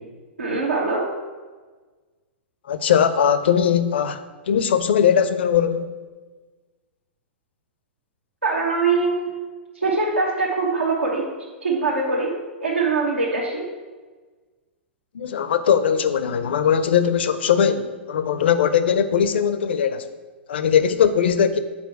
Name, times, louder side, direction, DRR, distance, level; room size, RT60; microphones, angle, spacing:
voice 1, 0.4-1.1 8.4-9.3 9.8-11.3 11.6-13.7, right 3 dB, 90° right, -4 dB, 1.0 m, -23 dB
voice 2, 2.7-4.2 4.5-5.9 15.1-20.1 20.5-21.6, left 8 dB, 60° left, 12 dB, 0.5 m, -20 dB
7.2 x 4.5 x 4.5 m, 1.3 s
figure-of-eight pair, 105°, 6 cm